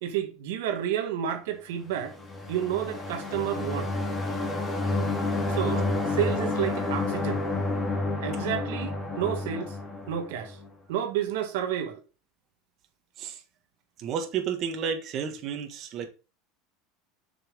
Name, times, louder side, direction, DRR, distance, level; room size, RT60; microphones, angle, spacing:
voice 1, 0.0-2.1 2.5-3.9 5.5-7.4 8.2-9.7 10.1-10.6 10.9-12.0, right 10 dB, 80° right, 1.5 m, -30 dB
sound 1, 2.0-10.7, left 2 dB, 15° left, 1.9 m, -30 dB
voice 2, 14.0-16.1, right 7 dB, 40° right, 1.7 m, -31 dB
6.8 x 5.9 x 3.7 m
supercardioid pair, 145°, 0 cm